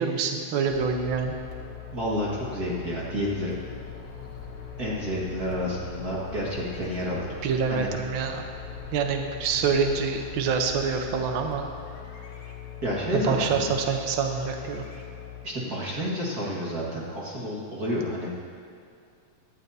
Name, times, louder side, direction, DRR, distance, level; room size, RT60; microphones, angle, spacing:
voice 1, 0.0-1.3 7.4-8.4 8.9-11.7 13.1-14.8, right 5 dB, 70° right, 4 dB, 1.1 m, -26 dB
sound 1, 0.7-15.4, left 7 dB, 60° left, 2.2 m, -41 dB
voice 2, 1.9-3.6 4.8-7.3 7.7-7.9 12.8-13.7 15.4-18.3, equal, 35° right, -6 dB, 1.8 m, -30 dB
18.0 x 12.0 x 2.8 m, 2.4 s
omnidirectional pair, 3.4 m